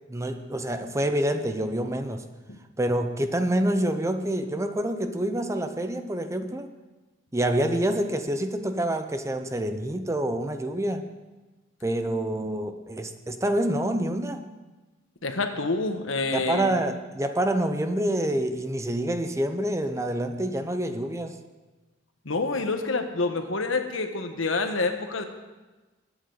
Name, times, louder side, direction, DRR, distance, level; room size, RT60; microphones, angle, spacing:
voice 1, 0.1-2.2 2.8-6.7 7.3-11.1 11.8-14.4 16.3-21.4, right 1 dB, 15° right, 8 dB, 0.7 m, -27 dB
voice 2, 15.2-16.7 22.2-25.2, left 3 dB, 80° left, 6 dB, 1.3 m, -27 dB
21.5 x 9.4 x 4.0 m, 1.2 s
head